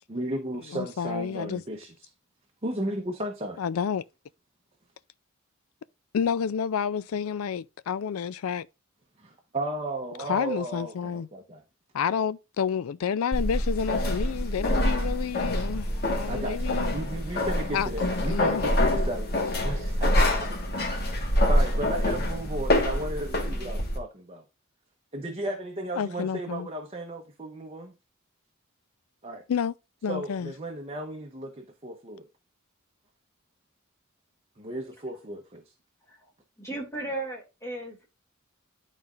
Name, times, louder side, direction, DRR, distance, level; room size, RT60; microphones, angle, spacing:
voice 1, 0.1-2.1 2.6-3.6 9.2-11.6 16.3-20.6 21.0-24.4 25.1-27.9 29.2-29.4 30.1-32.3 34.6-35.6, right 1 dB, 30° right, 0.9 m, -35 dB
voice 2, 0.7-1.6 3.6-4.0 6.1-8.7 10.2-11.3 11.9-16.9 17.7-17.9 18.3-18.6 26.0-26.7 29.5-29.7 30.0-30.5, left 7 dB, 85° left, 0.4 m, -29 dB
sound 1, 13.3-24.0, left 1 dB, 50° left, 1.4 m, -26 dB
voice 3, 36.6-38.1, right 2 dB, 15° left, 2.4 m, -35 dB
11.5 x 4.1 x 2.4 m
head